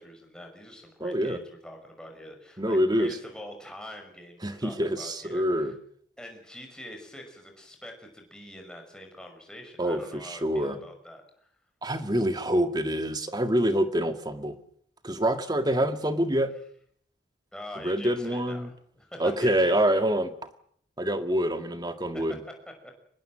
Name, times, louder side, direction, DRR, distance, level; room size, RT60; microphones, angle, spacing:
voice 1, 0.0-5.7 6.2-11.5 17.5-20.0 22.1-22.2, left 1 dB, 5° left, 3 dB, 5.8 m, -44 dB
voice 2, 1.0-1.4 2.6-3.1 4.4-5.7 9.8-10.8 11.8-14.6 15.0-16.5 17.8-18.7 19.2-20.3 21.0-22.4, equal, 20° right, 8 dB, 1.9 m, -26 dB
25.5 x 20.0 x 7.7 m, 0.64 s
head